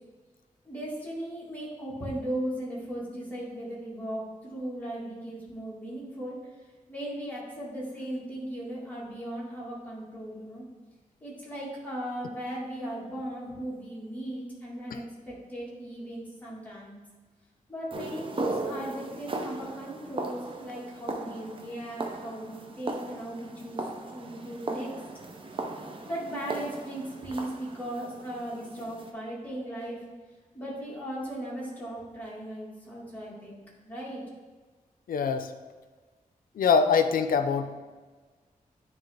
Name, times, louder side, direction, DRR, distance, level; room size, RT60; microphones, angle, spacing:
voice 1, 0.6-6.4 6.9-10.6 11.2-17.0 17.7-24.9 26.1-30.0 30.5-33.6 33.8-34.2, right 1 dB, 10° left, -6 dB, 1.8 m, -37 dB
sound 1, 17.9-29.1, right 2 dB, 35° right, 0.6 m, -37 dB
voice 2, 35.1-35.5 36.6-37.8, left 5 dB, 90° left, 9 dB, 0.5 m, -24 dB
9.5 x 3.3 x 3.4 m, 1.4 s
wide cardioid pair, 155°, 14 cm